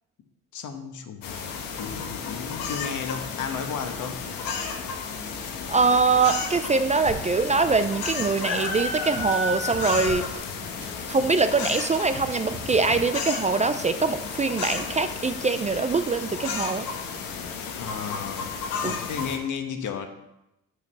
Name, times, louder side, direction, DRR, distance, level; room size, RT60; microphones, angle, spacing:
voice 1, 0.5-4.2 17.7-18.5 18.8-20.1, left 6 dB, 60° left, 6 dB, 1.4 m, -33 dB
sound 1, 1.2-19.4, left 5 dB, 75° left, 1.4 m, -33 dB
voice 2, 5.7-10.3 11.1-16.9 18.8-18.9, right 4 dB, 20° right, 10 dB, 0.5 m, -23 dB
sound 2, 7.1-7.3 7.6-7.9 8.2-8.4 8.7-10.3 10.6-10.9 11.2-11.4 11.7-13.0, right 3 dB, 65° right, 2.1 m, -39 dB
6.5 x 5.2 x 6.8 m, 0.88 s
supercardioid pair, 85°, 34 cm